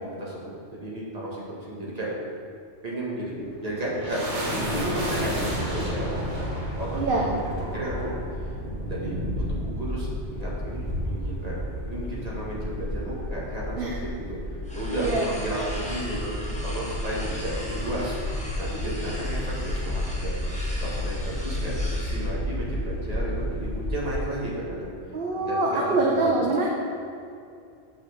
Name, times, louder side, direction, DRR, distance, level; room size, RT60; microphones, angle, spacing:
voice 1, 0.0-2.2 2.8-7.2 7.5-8.2 8.4-8.5 8.8-9.2 9.5-14.4 14.7-20.4 20.8-24.9 25.3-26.4, right 1 dB, 35° right, -6 dB, 2.1 m, -33 dB
sound 1, 3.2-14.0, equal, 70° right, 1.8 m, -32 dB
sound 2, 6.4-24.2, left 1 dB, 85° left, 2.1 m, -33 dB
voice 2, 6.9-7.3 13.8-14.0 15.0-15.3 25.1-26.7, right 2 dB, 55° right, -2 dB, 1.0 m, -24 dB
sound 3, 14.6-22.3, equal, 5° left, 1.6 m, -40 dB
6.7 x 6.1 x 6.7 m, 2.5 s
omnidirectional pair, 1.2 m